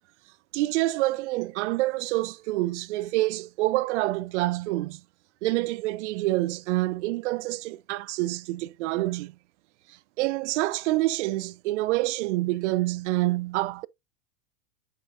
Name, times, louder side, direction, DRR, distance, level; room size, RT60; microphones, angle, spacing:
voice 1, 0.5-5.0 5.4-9.3 10.2-13.9, right 18 dB, 70° right, 0.5 m, -27 dB
8.4 x 5.0 x 2.5 m
supercardioid pair, 130°, 36 cm